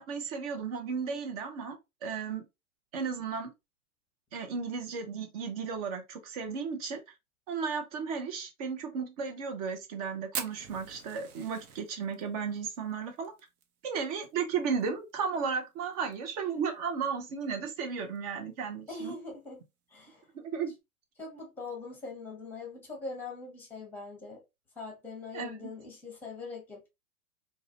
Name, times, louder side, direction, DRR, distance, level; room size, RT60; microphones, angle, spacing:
voice 1, 0.0-1.8 2.0-2.5 2.9-3.5 4.3-7.0 7.5-13.3 13.8-19.1 20.3-20.7 25.3-25.7, right 6 dB, 30° right, 0.4 m, -34 dB
Fire, 10.3-14.8 15.1-15.2 15.5-15.6 15.9-16.4 16.9-17.0 18.0-18.2, right 7 dB, 80° right, 0.7 m, -42 dB
voice 2, 18.9-19.6 19.9-20.2 21.2-24.4 24.8-26.9, left 3 dB, 5° left, 0.8 m, -42 dB
2.3 x 2.1 x 2.6 m
hypercardioid pair, 120°, 44 cm